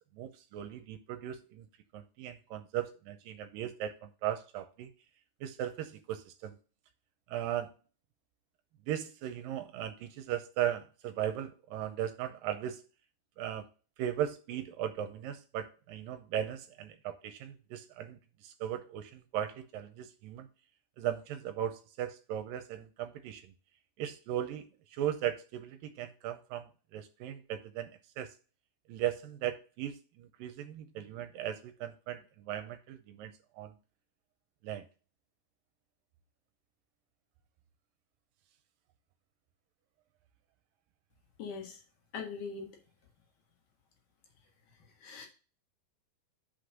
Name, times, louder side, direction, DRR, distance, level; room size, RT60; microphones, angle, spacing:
voice 1, 0.1-1.7 1.9-4.9 5.4-6.6 7.3-7.7 8.9-12.8 13.4-13.7 14.0-20.5 21.0-23.5 24.0-24.7 24.9-27.9 28.2-28.3 28.9-33.8 34.6-34.9, right 11 dB, 80° right, 2.2 m, -37 dB
voice 2, 41.4-41.8 42.1-42.7 45.0-45.3, left 5 dB, 65° left, 2.9 m, -40 dB
5.9 x 5.1 x 6.4 m
omnidirectional pair, 4.3 m